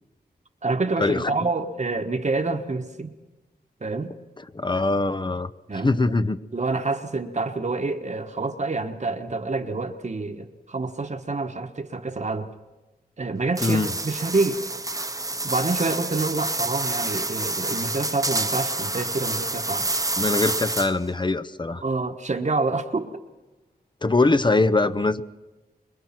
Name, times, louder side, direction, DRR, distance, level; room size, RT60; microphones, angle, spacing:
voice 1, 0.6-3.1 3.8-4.1 5.7-5.9 6.5-12.5 13.2-14.6 15.4-20.0 21.8-23.1, right 3 dB, 45° right, 4 dB, 1.3 m, -27 dB
voice 2, 4.5-5.5 5.8-6.4 13.6-13.9 20.2-21.8 24.0-25.2, left 3 dB, 30° left, 13 dB, 0.8 m, -22 dB
sound 1, 13.6-21.1, right 2 dB, 20° right, 1.0 m, -28 dB
25.0 x 21.5 x 5.9 m, 1.2 s
wide cardioid pair, 95°, 17 cm